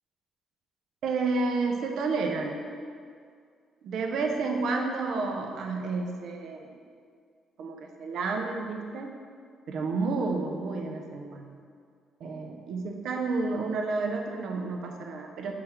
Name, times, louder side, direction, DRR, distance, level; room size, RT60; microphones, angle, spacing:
voice 1, 1.0-2.6 3.8-6.8 7.6-9.1 9.7-11.6 12.2-15.5, right 3 dB, 75° right, 2 dB, 0.4 m, -30 dB
3.4 x 3.3 x 2.9 m, 2.1 s
cardioid pair, 90°, 0 cm